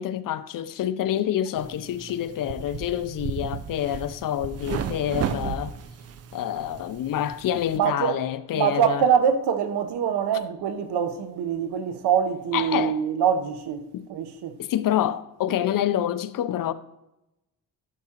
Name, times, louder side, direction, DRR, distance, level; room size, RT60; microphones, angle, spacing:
voice 1, 0.0-5.7 6.3-9.0 12.5-13.0 13.9-14.1 14.6-16.7, left 11 dB, 55° left, 0.5 m, -27 dB
sound 1, 1.5-7.8, right 8 dB, 40° right, 0.4 m, -34 dB
voice 2, 7.7-8.2 8.5-13.8 14.1-14.6, right 8 dB, 80° right, 0.8 m, -24 dB
12.0 x 4.9 x 2.8 m
cardioid pair, 130°, 39 cm